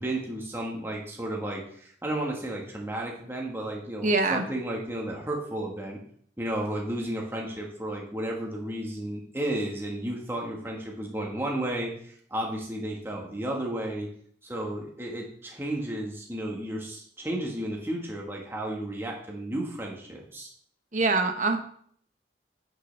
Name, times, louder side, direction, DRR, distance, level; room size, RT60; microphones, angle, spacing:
voice 1, 0.0-6.0 6.4-14.1 14.4-20.5, right 1 dB, 15° right, -1 dB, 1.5 m, -33 dB
voice 2, 4.0-4.4 20.9-21.6, right 3 dB, 45° right, 6 dB, 0.9 m, -24 dB
8.9 x 6.5 x 3.4 m, 0.62 s
head